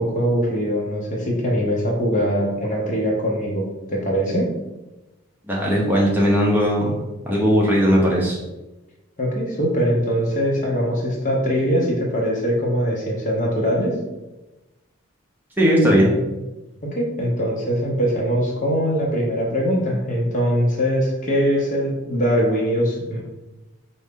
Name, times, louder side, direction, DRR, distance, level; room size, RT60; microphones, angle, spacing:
voice 1, 0.0-4.5 9.2-13.9 16.8-23.2, equal, 40° left, -2 dB, 0.9 m, -22 dB
voice 2, 5.5-6.9 7.3-8.4 15.6-16.1, equal, 10° right, -4 dB, 0.7 m, -18 dB
4.6 x 2.7 x 3.6 m, 1.0 s
head